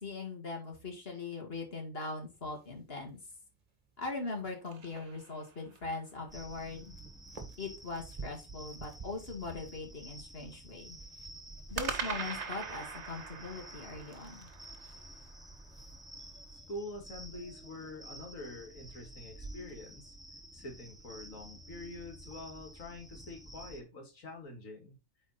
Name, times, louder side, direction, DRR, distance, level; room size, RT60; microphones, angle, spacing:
voice 1, 0.0-3.2 4.0-6.9 7.6-11.0 11.7-14.5, left 3 dB, 45° left, 2.4 m, -41 dB
sound 1, 2.2-17.6, right 5 dB, 30° right, 1.7 m, -55 dB
sound 2, 4.1-6.0 11.8-16.0, right 5 dB, 55° right, 1.4 m, -42 dB
sound 3, 6.3-23.8, right 1 dB, ahead, 0.9 m, -51 dB
voice 2, 16.7-20.1 20.5-25.0, left 1 dB, 70° left, 2.5 m, -45 dB
8.8 x 4.4 x 4.2 m
omnidirectional pair, 1.4 m